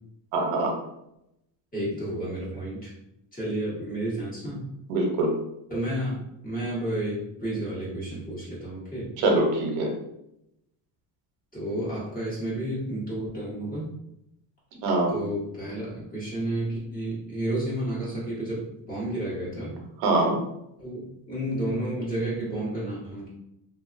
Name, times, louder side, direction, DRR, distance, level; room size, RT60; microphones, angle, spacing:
voice 1, 0.3-0.7 4.9-5.3 9.2-9.9 14.8-15.1 20.0-20.4, right 2 dB, 85° right, 1 dB, 0.9 m, -23 dB
voice 2, 1.7-2.9 3.3-4.6 5.7-9.1 11.5-13.9 15.1-19.7 20.8-23.3, right 1 dB, 15° left, -8 dB, 1.4 m, -31 dB
2.6 x 2.4 x 2.5 m, 0.81 s
cardioid pair, 125°, 48 cm